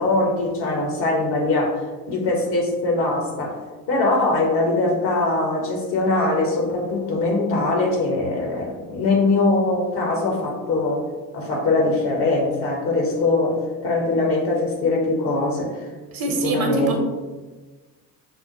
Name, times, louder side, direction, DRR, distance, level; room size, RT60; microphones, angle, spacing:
voice 1, 0.0-1.8 2.1-3.6 3.9-11.0 11.3-15.9 16.3-17.0, left 2 dB, 55° left, -1 dB, 1.3 m, -22 dB
voice 2, 16.1-17.0, right 2 dB, 50° right, 2 dB, 0.9 m, -24 dB
5.7 x 2.1 x 2.9 m, 1.3 s
figure-of-eight pair, 60°, 47 cm